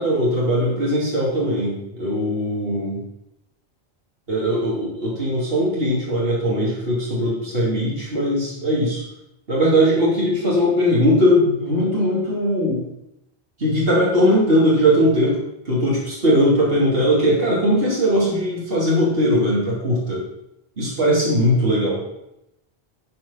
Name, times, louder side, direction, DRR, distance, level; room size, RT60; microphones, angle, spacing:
voice 1, 0.0-3.0 4.3-9.0 9.5-12.8 13.6-15.4 15.7-20.2 20.8-22.0, equal, 65° right, -6 dB, 3.1 m, -19 dB
13.0 x 4.7 x 5.8 m, 0.85 s
omnidirectional pair, 1.1 m